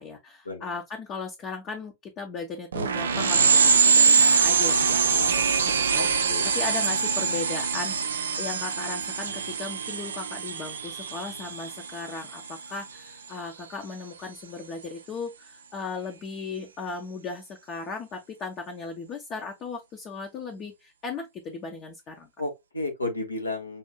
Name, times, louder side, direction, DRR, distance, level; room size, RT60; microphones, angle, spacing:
voice 1, 0.0-5.5 5.9-22.3, left 4 dB, 35° left, 0.8 m, -37 dB
sound 1, 2.7-12.9, right 5 dB, 70° right, 0.4 m, -24 dB
voice 2, 6.0-6.5 22.4-23.8, left 2 dB, 80° left, 1.0 m, -32 dB
5.6 x 2.6 x 2.2 m
figure-of-eight pair, 90°, 0 cm